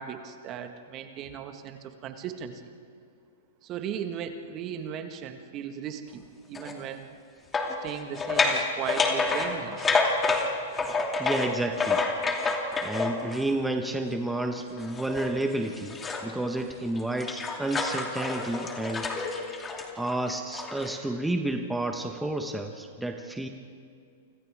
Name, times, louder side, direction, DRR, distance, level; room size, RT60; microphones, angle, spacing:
voice 1, 0.0-2.6 3.6-7.2 7.8-9.9, right 8 dB, 35° right, 6 dB, 1.8 m, -37 dB
sound 1, 6.5-6.8 7.5-13.5 14.8-16.3 16.7-21.0, left 3 dB, 15° left, 2.7 m, -28 dB
voice 2, 11.2-12.0 12.8-19.1 19.9-23.5, right 1 dB, 5° right, 4 dB, 1.4 m, -30 dB
29.5 x 26.0 x 3.7 m, 2.4 s
hypercardioid pair, 115°, 0 cm